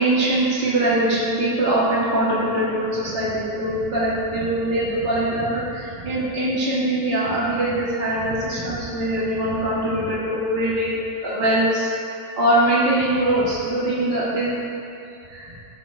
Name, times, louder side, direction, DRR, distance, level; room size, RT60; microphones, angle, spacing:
voice 1, 0.0-11.9 12.4-14.5 15.3-15.5, right 1 dB, 45° right, -8 dB, 2.0 m, -22 dB
16.0 x 9.1 x 2.3 m, 2.7 s
omnidirectional pair, 1.4 m